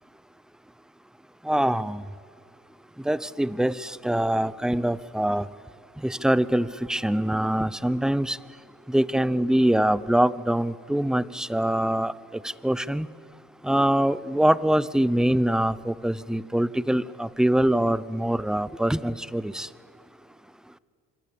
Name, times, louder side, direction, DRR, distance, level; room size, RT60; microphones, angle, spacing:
voice 1, 1.5-2.0 3.1-5.4 6.0-8.4 8.9-12.1 12.6-13.1 13.6-19.7, right 1 dB, ahead, 0.8 m, -24 dB
26.0 x 26.0 x 8.8 m
cardioid pair, 90°, 30 cm